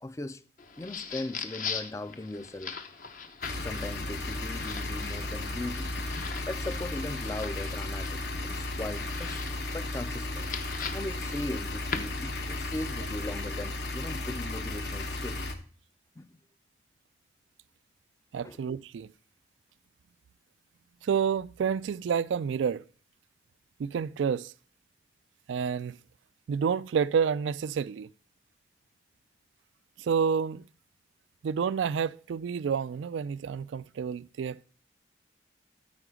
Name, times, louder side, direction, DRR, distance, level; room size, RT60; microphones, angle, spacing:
voice 1, 0.0-0.4 0.8-2.8 3.5-9.4 9.7-10.5 10.9-15.4 16.2-16.4 18.4-18.6, left 1 dB, 15° left, 0.4 m, -39 dB
sound 1, 0.6-12.6, left 6 dB, 45° left, 0.9 m, -41 dB
sound 2, 3.4-15.6, left 2 dB, 60° left, 1.2 m, -34 dB
voice 2, 18.3-19.1 21.0-22.8 23.8-24.5 25.5-26.0 26.5-28.1 30.0-30.7 31.4-34.7, right 6 dB, 85° right, 0.3 m, -29 dB
13.0 x 4.7 x 4.9 m
head